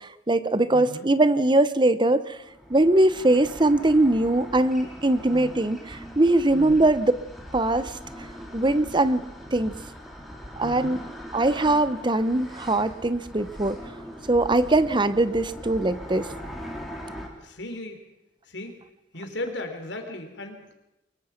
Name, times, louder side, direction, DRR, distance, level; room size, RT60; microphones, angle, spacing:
voice 1, 0.0-2.4 2.7-7.1 7.5-7.9 8.5-9.2 9.5-9.7 10.6-11.0 11.3-13.8 14.3-16.3, right 2 dB, 25° right, 14 dB, 0.9 m, -21 dB
voice 2, 0.7-1.1 5.3-5.6 6.5-6.9 10.6-11.0 17.4-18.0 18.5-18.7 19.1-20.7, left 1 dB, 65° left, 5 dB, 3.6 m, -36 dB
sound 1, 2.4-17.3, equal, ahead, 4.0 m, -41 dB
23.5 x 22.5 x 5.9 m, 0.92 s
head